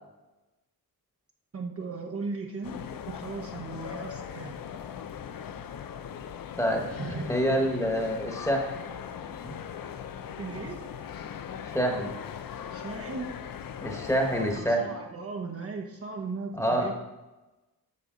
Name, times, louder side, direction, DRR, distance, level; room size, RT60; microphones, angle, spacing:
voice 1, 1.5-2.8 3.1-4.5 7.0-7.3 7.6-7.7 10.4-10.8 12.7-13.3 14.3-16.9, right 4 dB, 40° right, 1 dB, 0.9 m, -37 dB
sound 1, 2.6-14.6, left 8 dB, 65° left, 0.6 m, -39 dB
voice 2, 6.6-6.9 7.3-8.6 9.4-9.6 11.7-12.1 13.8-14.9 16.5-16.9, equal, 10° left, 1 dB, 1.3 m, -26 dB
11.0 x 6.7 x 3.9 m, 1.1 s
wide cardioid pair, 150°, 37 cm